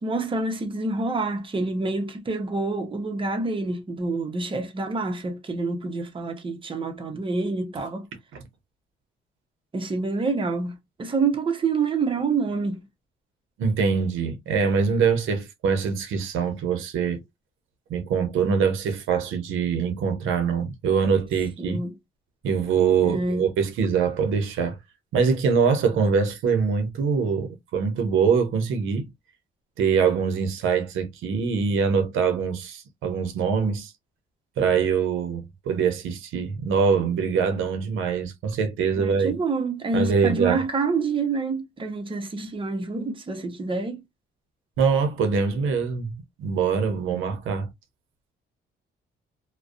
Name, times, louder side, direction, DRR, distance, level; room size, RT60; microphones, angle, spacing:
voice 1, 0.0-8.1 9.7-12.8 21.6-21.9 23.0-23.5 39.0-44.0 47.1-47.2, right 3 dB, 25° right, 0.8 m, -27 dB
voice 2, 13.6-17.2 17.9-21.8 22.4-24.8 25.1-29.1 29.8-33.9 34.6-39.3 39.9-40.6 44.8-46.1 46.4-47.7, right 6 dB, 85° right, 0.7 m, -23 dB
2.5 x 2.1 x 2.4 m
cardioid pair, 90°, 20 cm